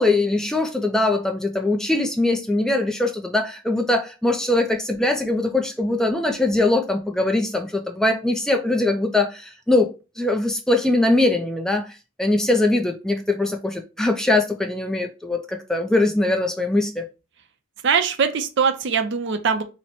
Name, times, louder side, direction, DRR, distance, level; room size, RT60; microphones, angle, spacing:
voice 1, 0.0-11.9 12.2-17.1, left 2 dB, 5° left, 0.3 m, -21 dB
voice 2, 17.8-19.6, right 6 dB, 55° right, 0.5 m, -21 dB
3.0 x 2.1 x 4.0 m
head